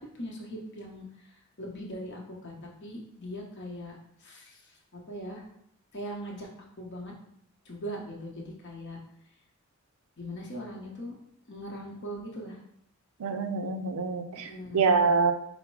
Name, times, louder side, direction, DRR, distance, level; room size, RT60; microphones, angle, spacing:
voice 1, 0.1-5.4 5.9-6.5 6.8-7.1 7.6-9.0 10.2-11.2 11.5-12.6 14.3-15.3, equal, 55° left, -1 dB, 1.0 m, -40 dB
voice 2, 13.2-15.3, right 4 dB, 90° right, 7 dB, 0.5 m, -26 dB
5.0 x 2.0 x 4.7 m, 0.71 s
head